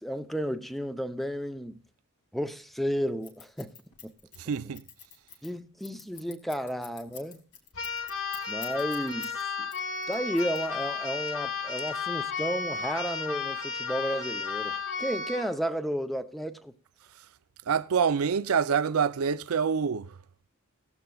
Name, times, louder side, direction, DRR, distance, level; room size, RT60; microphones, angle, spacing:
voice 1, 0.0-1.8 2.3-3.7 4.0-4.1 5.4-7.4 8.5-9.7 10.1-16.7, equal, ahead, 0.6 m, -32 dB
Scissors, 3.2-9.4 9.7-11.0, left 8 dB, 85° left, 2.6 m, -47 dB
voice 2, 4.4-4.8 17.7-20.1, right 6 dB, 70° right, 0.5 m, -26 dB
Keyboard (musical), 7.7-15.5, left 5 dB, 60° left, 2.2 m, -33 dB
17.5 x 14.5 x 2.3 m
head